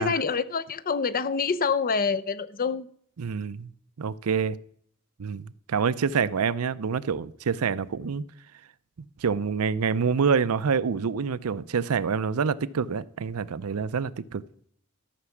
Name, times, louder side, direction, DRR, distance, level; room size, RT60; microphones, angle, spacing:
voice 1, 0.0-2.9, left 5 dB, 40° left, 0.6 m, -26 dB
voice 2, 3.2-3.7 4.0-4.6 5.2-8.2 9.0-14.4, right 6 dB, 75° right, 0.5 m, -27 dB
13.0 x 6.0 x 7.1 m
head